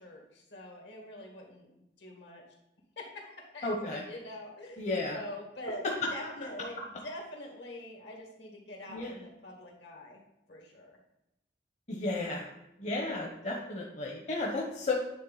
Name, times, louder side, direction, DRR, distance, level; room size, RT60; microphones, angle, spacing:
voice 1, 0.0-2.4 3.0-5.8 6.1-10.2 10.5-11.0, left 1 dB, 70° left, 0 dB, 2.0 m, -45 dB
voice 2, 3.6-4.0 4.8-5.2 5.7-6.1 8.9-9.2 11.9-12.5 12.8-14.9, left 2 dB, 35° left, -1 dB, 0.9 m, -33 dB
9.6 x 3.7 x 4.0 m, 0.88 s
head